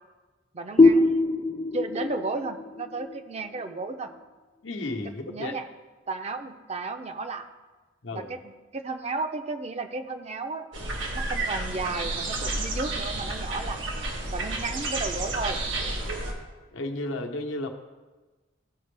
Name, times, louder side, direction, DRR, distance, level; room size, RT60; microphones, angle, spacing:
voice 1, 0.5-1.3 1.7-4.1 5.3-5.7 6.1-7.5 8.1-10.7 11.1-13.9 14.3-15.6, right 3 dB, 35° right, 7 dB, 0.6 m, -33 dB
sound 1, 0.8-4.2, left 2 dB, 30° left, 0.4 m, -23 dB
voice 2, 4.6-5.6 8.0-8.3 16.7-17.7, left 2 dB, 90° left, 3 dB, 1.0 m, -33 dB
sound 2, 10.7-16.3, right 2 dB, 90° right, 1.4 m, -31 dB
15.0 x 5.1 x 3.3 m, 1.2 s
head